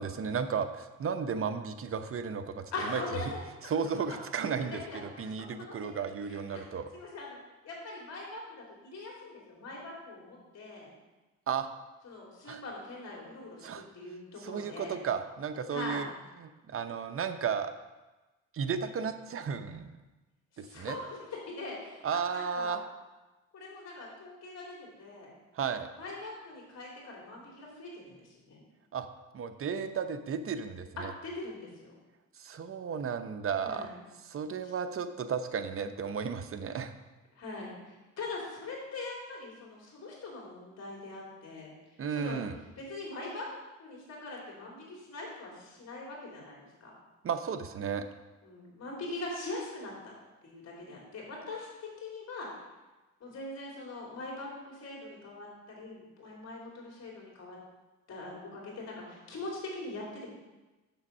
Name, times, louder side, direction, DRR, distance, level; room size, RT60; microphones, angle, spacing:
voice 1, 0.0-2.6 2.9-3.0 3.7-6.9 11.5-11.7 12.5-12.6 13.6-13.9 14.4-16.1 16.4-17.7 18.5-19.9 20.6-21.0 22.0-22.8 25.5-25.9 28.9-29.1 29.3-31.1 32.4-33.9 34.2-36.9 42.0-42.6 47.2-48.0, right 6 dB, 45° right, 9 dB, 0.8 m, -34 dB
voice 2, 2.7-3.4 4.0-4.2 4.6-5.2 5.6-6.6 6.9-7.4 7.6-10.9 12.0-15.0 15.7-16.1 20.5-21.2 21.5-22.8 23.5-25.3 25.9-28.6 31.0-31.9 33.6-33.9 34.6-34.7 37.4-41.7 42.1-42.4 42.8-43.5 43.8-46.9 48.4-50.1 50.4-52.6 53.2-55.5 55.8-57.6 58.1-60.3, left 2 dB, 60° left, -3 dB, 3.5 m, -42 dB
7.1 x 7.1 x 5.4 m, 1.1 s
cardioid pair, 90°, 30 cm